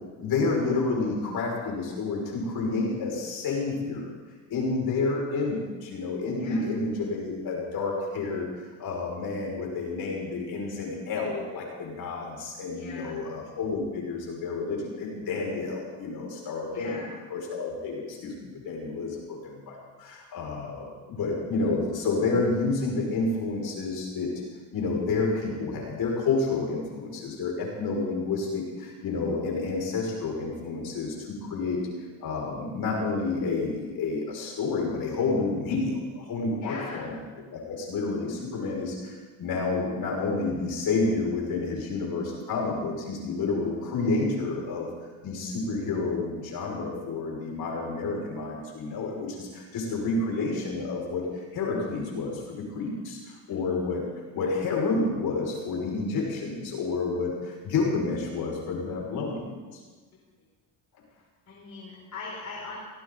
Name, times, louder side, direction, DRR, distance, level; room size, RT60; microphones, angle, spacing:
voice 1, 0.2-4.1 4.5-8.5 8.8-17.0 17.3-24.3 24.7-31.8 32.2-37.1 37.5-44.9 45.2-54.0 54.3-59.8, left 3 dB, 65° left, -1 dB, 6.2 m, -29 dB
voice 2, 6.4-6.7 12.7-13.2 16.7-17.1 36.6-37.0 60.4-60.5 61.5-62.8, left 3 dB, 50° left, -4 dB, 4.7 m, -40 dB
18.5 x 17.5 x 4.1 m, 1.4 s
supercardioid pair, 75°, 39 cm